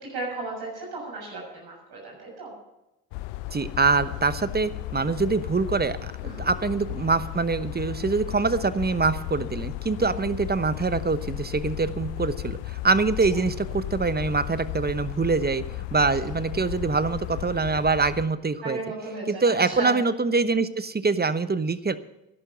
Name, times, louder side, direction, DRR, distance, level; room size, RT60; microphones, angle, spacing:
voice 1, 0.0-2.5 6.2-6.5 10.0-10.1 16.2-16.3 18.6-20.0, right 2 dB, 70° right, -2 dB, 6.7 m, -35 dB
sound 1, 3.1-18.3, left 17 dB, 80° left, 0.6 m, -35 dB
voice 2, 3.5-6.1 6.4-15.6 15.9-18.8 19.3-22.0, right 4 dB, 25° right, 14 dB, 0.9 m, -24 dB
13.0 x 11.5 x 5.8 m, 0.92 s
hypercardioid pair, 45°, 41 cm